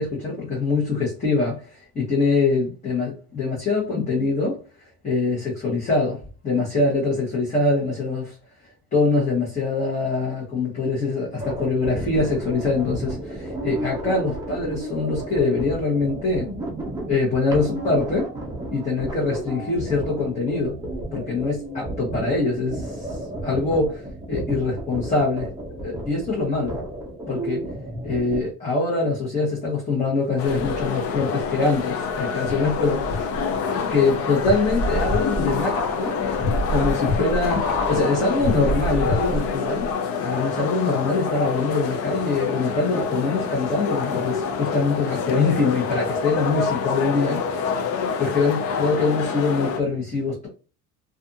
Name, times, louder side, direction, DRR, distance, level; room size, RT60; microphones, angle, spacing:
voice 1, 0.0-8.4 8.9-16.5 17.1-18.3 18.7-20.8 21.1-25.5 25.8-26.8 27.3-27.6 28.0-33.2 33.9-39.9 40.2-47.7 48.2-50.5, left 3 dB, 20° left, -5 dB, 0.9 m, -24 dB
sound 1, 11.4-28.4, right 1 dB, 10° right, 0.5 m, -33 dB
praca alimen shopping, 30.4-49.8, left 5 dB, 50° left, 0.5 m, -27 dB
sound 2, 30.6-31.2 31.7-39.5 39.8-39.9, left 1 dB, 70° left, 0.9 m, -28 dB
2.5 x 2.4 x 2.6 m, 0.35 s
cardioid pair, 150°, 32 cm